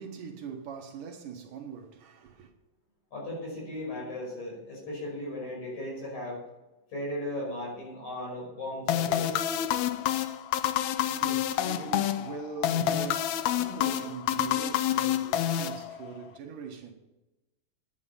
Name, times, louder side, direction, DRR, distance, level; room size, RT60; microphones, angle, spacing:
voice 1, 0.0-2.5 10.9-16.9, right 6 dB, 70° right, 2.9 m, -42 dB
voice 2, 3.1-6.4 6.9-9.4, left 1 dB, 55° left, 6.7 m, -36 dB
sound 1, 8.9-16.3, left 11 dB, 85° left, 1.6 m, -28 dB
11.0 x 9.9 x 5.6 m
omnidirectional pair, 4.0 m